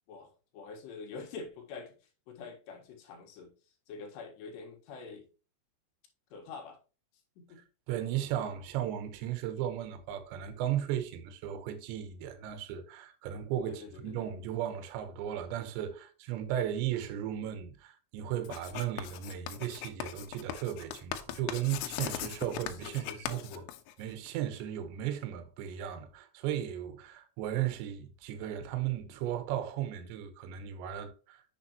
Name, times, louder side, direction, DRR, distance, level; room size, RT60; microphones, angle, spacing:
voice 1, 0.1-2.0 2.3-3.5 3.9-5.3 6.3-6.8 7.4-7.6 13.7-14.3 22.8-23.7, left 4 dB, 65° left, 3.3 m, -46 dB
voice 2, 7.9-23.6 24.0-31.4, right 11 dB, 75° right, 3.0 m, -35 dB
Writing, 18.4-24.3, left 11 dB, 85° left, 3.3 m, -40 dB
8.2 x 6.8 x 3.0 m
omnidirectional pair, 5.7 m